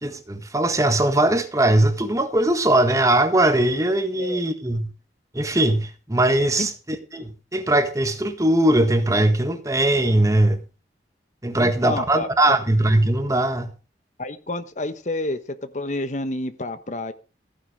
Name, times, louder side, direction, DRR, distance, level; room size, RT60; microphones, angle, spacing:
voice 1, 0.0-4.9 5.3-6.7 7.1-10.6 11.4-13.7, right 1 dB, 20° right, 1.6 m, -20 dB
voice 2, 11.6-12.6 14.2-17.1, left 2 dB, 45° left, 1.2 m, -29 dB
15.0 x 9.7 x 5.0 m
head